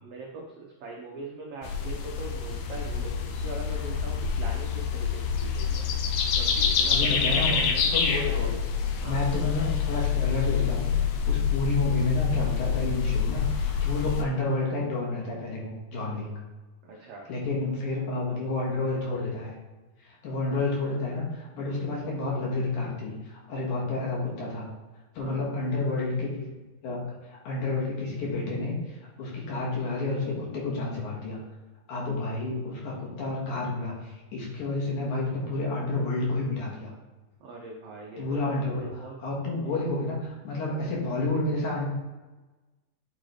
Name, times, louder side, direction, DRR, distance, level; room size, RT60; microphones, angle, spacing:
voice 1, 0.0-5.9 6.4-8.5 9.0-9.2 16.8-17.3 20.5-20.6 25.2-25.5 37.4-38.5 38.9-39.2 39.6-39.8, right 3 dB, 90° right, -2 dB, 1.3 m, -41 dB
sound 1, 1.6-14.2, left 7 dB, 85° left, 1.6 m, -27 dB
voice 2, 6.9-7.6 7.9-8.5 9.0-16.3 17.3-19.5 20.0-24.7 25.1-31.4 31.9-36.9 38.2-41.9, left 2 dB, 65° left, -4 dB, 2.9 m, -30 dB
9.0 x 3.9 x 3.2 m, 1.2 s
omnidirectional pair, 3.9 m